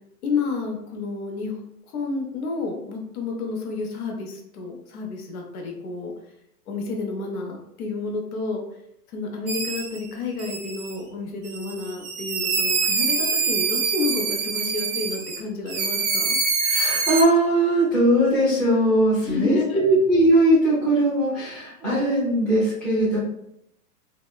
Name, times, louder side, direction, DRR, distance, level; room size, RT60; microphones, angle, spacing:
voice 1, 0.2-1.6 1.9-6.1 6.7-8.6 9.1-16.4 19.2-19.8, left 3 dB, 65° left, 1 dB, 0.8 m, -30 dB
sound 1, 9.5-10.0 10.4-10.9 11.4-15.4 15.7-17.2, right 4 dB, 50° right, 0.6 m, -25 dB
voice 2, 16.6-23.2, right 1 dB, ahead, -12 dB, 0.6 m, -20 dB
2.8 x 2.1 x 2.2 m, 0.77 s
hypercardioid pair, 145°, 48 cm